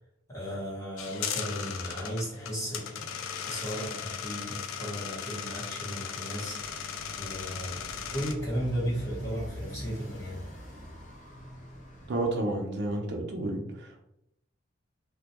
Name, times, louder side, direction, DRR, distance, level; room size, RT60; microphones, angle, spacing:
voice 1, 0.3-3.1 3.5-6.6 7.2-7.8 8.1-10.4, equal, 15° left, -7 dB, 0.9 m, -35 dB
sound 1, 1.0-8.3, left 7 dB, 85° left, 0.3 m, -37 dB
Motorcycle, 6.5-12.4, equal, 35° left, 0.6 m, -43 dB
voice 2, 12.1-14.0, right 2 dB, 55° right, 1 dB, 0.5 m, -31 dB
2.2 x 2.1 x 2.8 m, 0.81 s
head